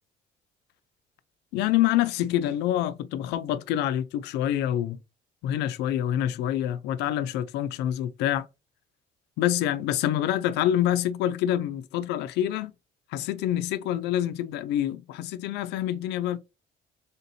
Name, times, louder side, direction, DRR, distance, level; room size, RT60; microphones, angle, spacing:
voice 1, 1.5-5.0 5.4-8.5 9.4-12.7 13.1-16.4, left 12 dB, 85° left, 0.4 m, -26 dB
3.5 x 2.7 x 4.1 m
cardioid pair, 110°, 17 cm